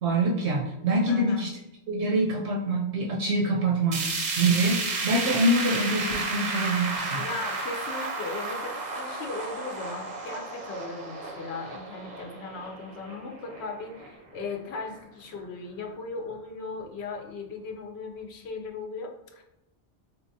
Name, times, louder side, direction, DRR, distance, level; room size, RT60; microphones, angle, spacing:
voice 1, 0.0-1.5 1.9-4.1 4.4-4.8 5.0-7.2, right 1 dB, 85° right, -1 dB, 0.9 m, -25 dB
voice 2, 1.1-1.5 7.1-19.4, left 3 dB, 75° left, 2 dB, 0.8 m, -38 dB
sound 1, 3.9-14.1 14.5-14.6 15.0-15.1 15.9-16.0, right 3 dB, 50° right, 0.6 m, -32 dB
3.4 x 2.9 x 2.6 m, 0.90 s
omnidirectional pair, 1.1 m